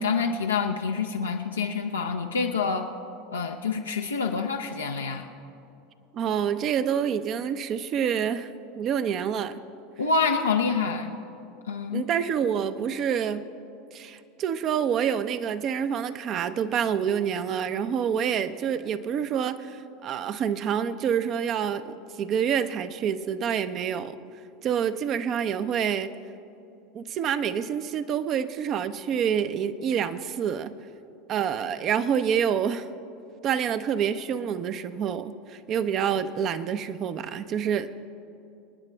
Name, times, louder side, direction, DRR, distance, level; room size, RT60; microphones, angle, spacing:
voice 1, 0.0-2.9 3.3-5.3 10.0-11.1 11.7-12.0, left 5 dB, 90° left, 2 dB, 0.6 m, -27 dB
voice 2, 6.1-9.6 11.9-13.4 13.9-24.2 24.6-26.1 26.9-30.7 31.3-32.9 33.4-38.1, right 8 dB, 45° right, 11 dB, 0.7 m, -27 dB
25.5 x 9.8 x 3.4 m, 2.7 s
hypercardioid pair, 85°, 0 cm